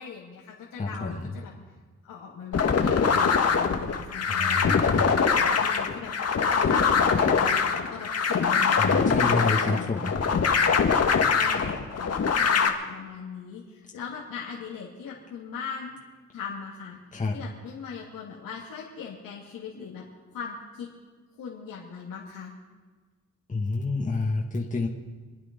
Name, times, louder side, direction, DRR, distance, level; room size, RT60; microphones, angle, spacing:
voice 1, 0.0-1.5 2.0-4.6 5.3-6.1 6.4-9.9 10.9-12.2 12.5-16.0 16.3-17.0 17.3-20.0 20.3-20.9 21.4-22.5, left 6 dB, 90° left, -4 dB, 2.6 m, -39 dB
voice 2, 0.8-1.3 4.3-5.0 8.8-10.1 17.1-17.4 23.5-24.9, left 3 dB, 25° left, -2 dB, 1.9 m, -28 dB
sound 1, 2.5-12.7, left 5 dB, 50° left, 1.7 m, -23 dB
27.0 x 10.0 x 5.4 m, 1.4 s
cardioid pair, 95°, 33 cm